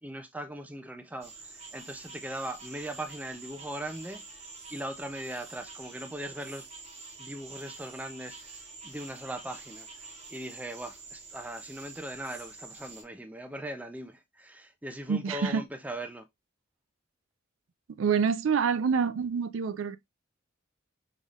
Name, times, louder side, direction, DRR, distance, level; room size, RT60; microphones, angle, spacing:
voice 1, 0.0-6.7 7.2-16.3, right 1 dB, 10° right, 0.4 m, -40 dB
sound 1, 1.2-13.0, right 3 dB, 30° right, 1.1 m, -47 dB
voice 2, 15.1-15.6 18.0-20.0, right 6 dB, 75° right, 0.4 m, -27 dB
5.5 x 3.2 x 2.4 m
head